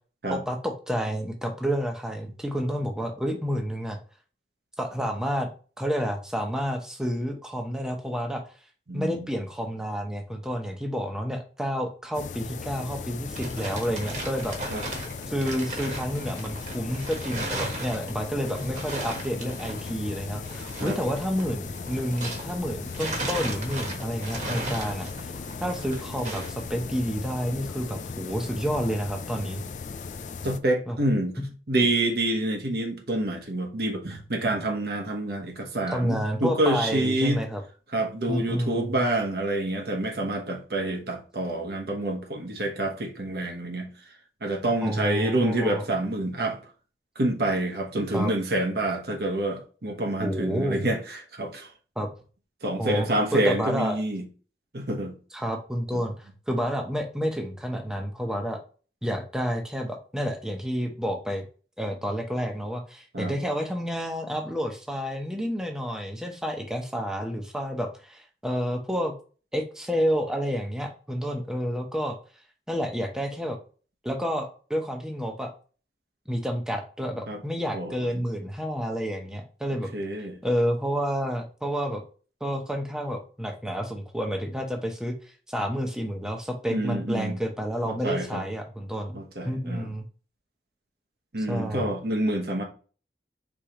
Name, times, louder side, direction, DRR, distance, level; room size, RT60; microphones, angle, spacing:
voice 1, 0.3-4.0 4.8-5.5 5.8-8.4 8.9-14.5 15.3-25.3 25.6-29.6 30.9-31.0 35.9-37.6 38.3-38.9 44.8-45.8 48.1-48.3 50.2-50.9 52.0-52.1 52.8-53.1 53.3-54.0 55.3-58.6 59.0-61.4 61.8-69.1 69.5-72.2 72.7-73.6 74.0-75.5 76.3-79.9 80.4-82.0 82.4-85.1 85.5-89.2 89.4-90.0 91.5-91.9, equal, 5° right, 0.7 m, -29 dB
voice 2, 8.9-9.3 14.7-14.8 20.8-21.0 30.4-31.3 31.7-37.4 37.9-43.9 44.4-46.6 47.2-51.7 52.6-54.2 54.7-55.1 55.9-56.0 63.1-63.3 77.3-77.4 77.7-78.2 79.9-80.4 86.7-87.4 87.9-88.4 89.1-89.9 91.3-92.6, right 1 dB, 65° right, 1.0 m, -27 dB
sound 1, 12.1-30.6, left 5 dB, 45° left, 0.4 m, -37 dB
sound 2, 13.1-22.6 22.9-26.6, right 1 dB, 40° right, 1.3 m, -36 dB
5.0 x 3.7 x 2.9 m
head